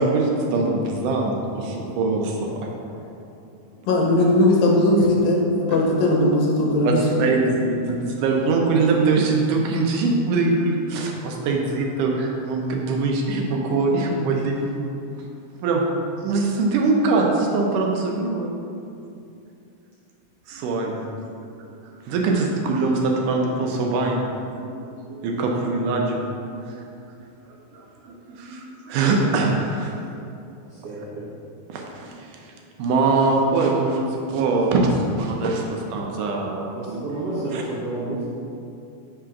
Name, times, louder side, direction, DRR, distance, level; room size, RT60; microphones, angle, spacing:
voice 1, 0.0-2.7 6.8-14.7 15.2-15.3 15.6-15.9 16.2-18.5 20.5-21.3 22.1-24.2 24.6-24.8 25.1-26.3 26.6-26.8 27.5-29.9 31.7-37.0 37.5-37.6, right 3 dB, 75° right, 0 dB, 2.1 m, -23 dB
voice 2, 3.8-7.2, left 1 dB, 85° left, -2 dB, 2.5 m, -18 dB
voice 3, 30.8-31.2 36.8-38.2, right 2 dB, 60° right, -9 dB, 1.7 m, -30 dB
5.7 x 3.8 x 5.7 m, 2.6 s
omnidirectional pair, 4.0 m